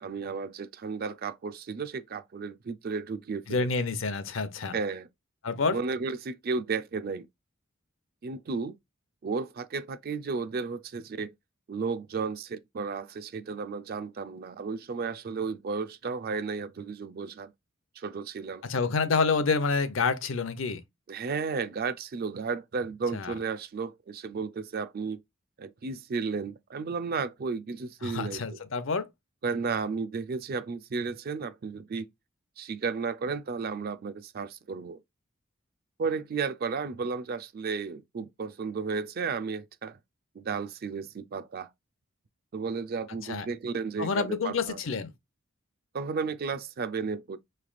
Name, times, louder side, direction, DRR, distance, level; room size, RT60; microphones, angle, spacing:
voice 1, 0.0-3.7 4.7-5.1 5.7-7.3 8.2-8.8 9.2-11.3 11.7-17.5 18.0-18.6 21.1-25.2 25.6-28.4 29.4-32.1 32.6-35.0 36.0-40.0 40.4-41.7 42.5-44.8 45.9-47.4, right 5 dB, 50° right, 0.4 m, -33 dB
voice 2, 3.5-4.7 5.4-5.8 18.6-20.8 23.1-23.3 28.0-29.1 43.2-43.5 44.0-45.1, left 4 dB, 65° left, 0.6 m, -28 dB
5.6 x 3.2 x 2.4 m
head